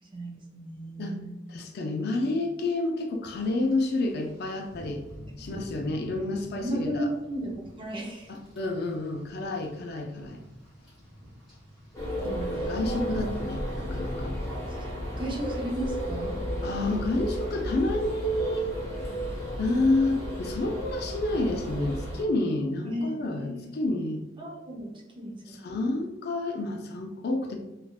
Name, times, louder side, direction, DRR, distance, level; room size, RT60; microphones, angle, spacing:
voice 1, 0.0-1.4 5.5-5.6 6.6-8.4 12.2-13.0 14.7-14.9 15.2-16.4 22.9-23.7 24.4-24.9 25.2-25.6, right 1 dB, 25° right, -2 dB, 0.5 m, -35 dB
voice 2, 1.5-5.0 5.4-7.1 8.5-10.4 12.2-14.3 16.6-18.7 19.6-24.2 25.6-27.6, left 2 dB, 55° left, 3 dB, 0.4 m, -29 dB
Rain, 3.3-19.6, equal, 5° right, 1.2 m, -51 dB
sound 1, 11.9-22.2, equal, 15° left, 0.9 m, -33 dB
3.3 x 2.4 x 2.3 m, 1.0 s
head